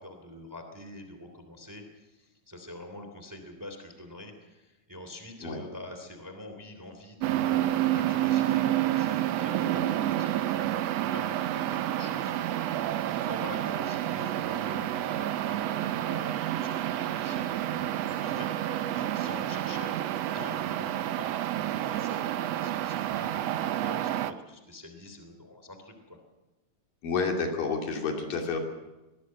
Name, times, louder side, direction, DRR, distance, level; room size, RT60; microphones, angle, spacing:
voice 1, 0.0-17.5 17.7-22.2 22.6-26.2, left 1 dB, 5° right, 6 dB, 2.6 m, -46 dB
sound 1, 7.2-24.3, right 12 dB, 75° right, 1.5 m, -29 dB
voice 2, 27.0-28.6, left 4 dB, 75° left, 3 dB, 4.4 m, -29 dB
24.0 x 18.0 x 7.7 m, 1.0 s
omnidirectional pair, 3.9 m